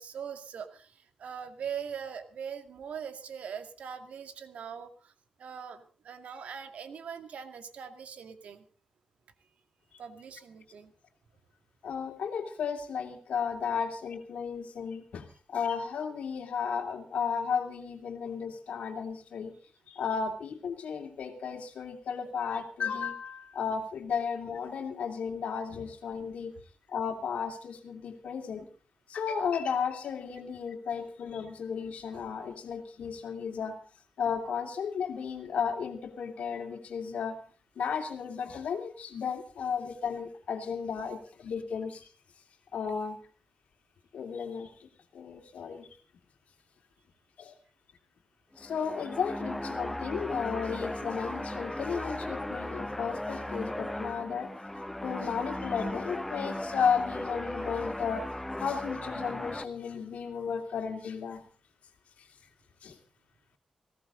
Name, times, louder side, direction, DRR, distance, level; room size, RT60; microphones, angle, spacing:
voice 1, 0.0-5.1 5.4-8.6 10.0-10.9, right 7 dB, 80° right, 8 dB, 2.1 m, -41 dB
voice 2, 11.8-15.2 15.5-19.5 19.9-26.5 26.9-28.7 29.1-33.8 34.2-37.4 37.8-42.0 42.7-43.2 44.1-44.7 45.1-45.9 47.4-47.5 48.6-54.5 55.0-58.2 58.6-61.4 62.8-62.9, left 6 dB, 80° left, 5 dB, 2.8 m, -34 dB
sound 1, 48.5-59.6, left 1 dB, 10° left, 0.8 m, -37 dB
19.0 x 17.0 x 3.9 m, 0.38 s
wide cardioid pair, 125°, 2 cm